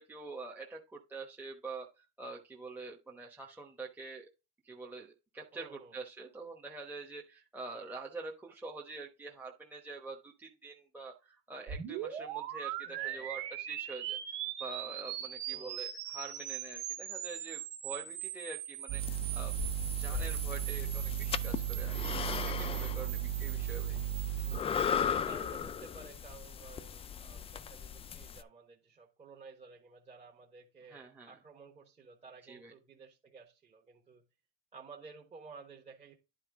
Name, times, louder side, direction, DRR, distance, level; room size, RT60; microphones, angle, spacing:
voice 1, 0.1-4.3 4.6-14.2 14.6-19.5 19.9-24.0 30.9-31.3 32.5-32.7, right 3 dB, 5° right, 1.0 m, -46 dB
voice 2, 5.5-6.0 12.8-13.5 15.5-15.9 20.0-20.3 24.7-34.2 34.7-36.1, right 5 dB, 20° right, 1.4 m, -54 dB
sound 1, 11.7-25.0, right 11 dB, 75° right, 2.1 m, -41 dB
sound 2, 18.9-24.6, right 13 dB, 45° right, 0.4 m, -36 dB
sound 3, 19.0-28.4, left 7 dB, 20° left, 0.4 m, -38 dB
10.0 x 4.4 x 3.6 m
cardioid pair, 120°, 30 cm